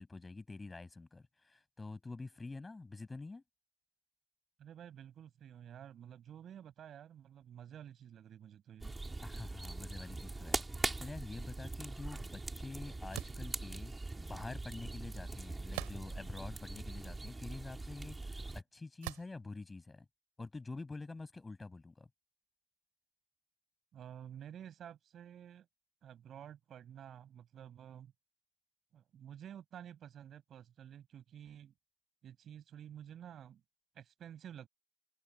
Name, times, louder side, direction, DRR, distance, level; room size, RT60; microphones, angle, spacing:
voice 1, 0.0-3.4 9.2-20.1 20.4-22.1, left 3 dB, 15° left, 7.8 m, -47 dB
voice 2, 4.6-8.9 23.9-25.7 26.0-28.1 28.9-31.7 32.2-33.6 33.9-34.7, right 9 dB, 35° right, 7.8 m, -51 dB
sound 1, 8.8-18.6, right 2 dB, 10° right, 3.1 m, -42 dB
sound 2, 13.1-13.5 15.7-16.3 17.0-17.1 19.0-19.4, right 29 dB, 70° right, 4.3 m, -43 dB
supercardioid pair, 110°, 0 cm